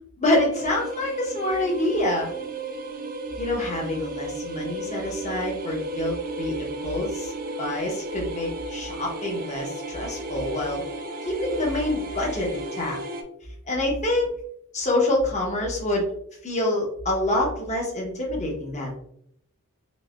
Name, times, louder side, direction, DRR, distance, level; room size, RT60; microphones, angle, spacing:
voice 1, 0.2-2.3 3.4-7.3 7.6-10.8 11.2-13.0 13.7-14.3 14.7-16.1 16.4-19.0, left 1 dB, 35° left, -1 dB, 1.0 m, -26 dB
sound 1, 0.5-13.2, right 2 dB, 40° right, 0.4 m, -34 dB
4.1 x 2.7 x 2.4 m, 0.69 s
head